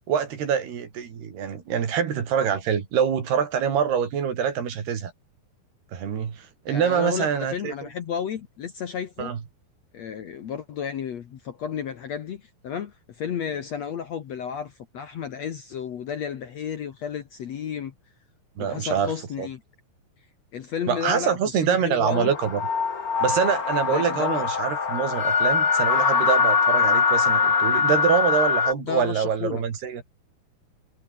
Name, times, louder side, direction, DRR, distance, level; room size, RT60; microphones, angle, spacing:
voice 1, 0.1-5.1 5.9-7.7 9.2-9.4 18.6-19.5 20.9-22.6 23.2-30.0, right 7 dB, 75° right, 5.4 m, -25 dB
voice 2, 6.7-9.3 9.9-17.9 18.6-19.6 20.5-22.3 23.9-24.4 28.9-29.6, left 8 dB, 55° left, 2.0 m, -32 dB
sound 1, 22.1-28.7, left 5 dB, 35° left, 1.4 m, -22 dB
omnidirectional pair, 4.7 m